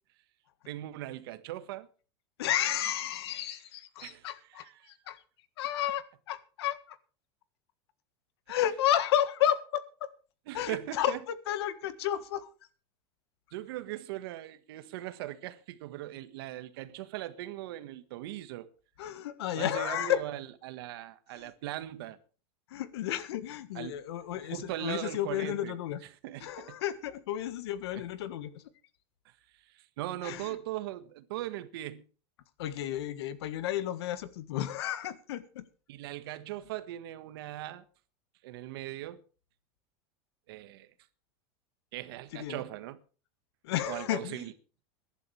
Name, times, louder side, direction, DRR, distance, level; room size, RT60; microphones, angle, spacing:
voice 1, 0.7-1.9 4.0-4.9 10.5-11.2 13.5-18.7 19.6-22.2 23.7-24.0 24.3-25.8 26.2-26.8 29.2-32.0 35.9-37.8 38.4-39.2 40.5-40.9 41.9-43.0 43.9-44.5, right 14 dB, 70° right, 1.6 m, -40 dB
voice 2, 2.4-5.2 5.6-7.0 8.5-10.1 10.5-12.5 19.0-20.2 21.3-21.5 22.7-26.0 26.4-28.6 30.2-30.6 32.6-35.6 42.3-42.6 43.6-44.5, left 11 dB, 90° left, 1.6 m, -32 dB
22.5 x 11.5 x 3.4 m
supercardioid pair, 175°, 13 cm